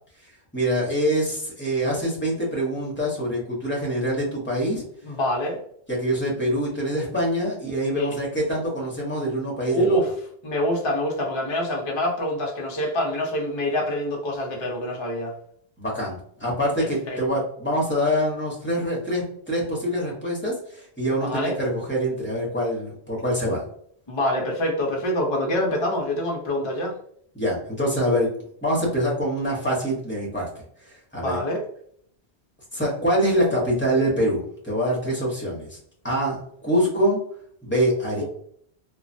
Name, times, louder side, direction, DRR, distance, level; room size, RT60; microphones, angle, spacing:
voice 1, 0.2-4.8 5.9-10.0 15.8-23.6 27.3-28.3 28.6-31.4 32.7-35.8 36.0-37.2 37.6-38.3, equal, 10° left, -3 dB, 0.9 m, -25 dB
voice 2, 5.0-5.6 7.9-8.2 9.7-10.1 10.4-15.4 16.8-17.4 21.2-21.6 24.1-27.0 31.2-31.6 38.2-38.3, left 1 dB, 35° left, -1 dB, 0.5 m, -26 dB
3.0 x 2.2 x 2.6 m, 0.64 s
omnidirectional pair, 1.1 m